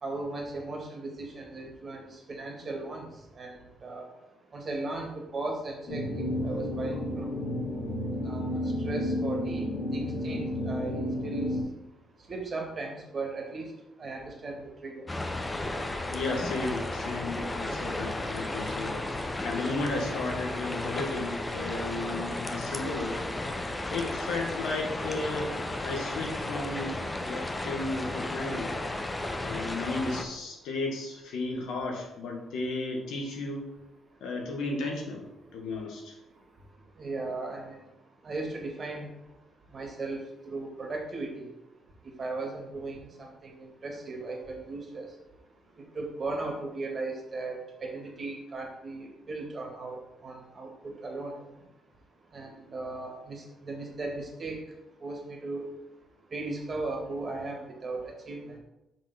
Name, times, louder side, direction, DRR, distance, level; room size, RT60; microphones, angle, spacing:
voice 1, 0.0-3.0 3.4-4.1 4.5-6.0 6.4-7.3 8.2-9.7 9.9-11.5 12.3-13.7 14.0-15.1 37.0-37.8 38.2-39.1 39.7-40.2 40.5-41.5 42.2-45.1 45.9-51.4 52.3-54.6 55.0-55.7 56.3-58.6, right 3 dB, 40° right, 1 dB, 1.9 m, -37 dB
sound 1, 5.9-11.6, left 1 dB, 55° left, 1.7 m, -31 dB
sound 2, 15.1-30.2, left 2 dB, 20° left, 0.7 m, -34 dB
voice 2, 16.1-23.2 23.9-28.7 29.4-33.7 34.2-35.2 35.5-36.2, left 3 dB, 85° left, 0 dB, 1.6 m, -34 dB
6.1 x 3.8 x 5.7 m, 0.95 s
cardioid pair, 90°, 0 cm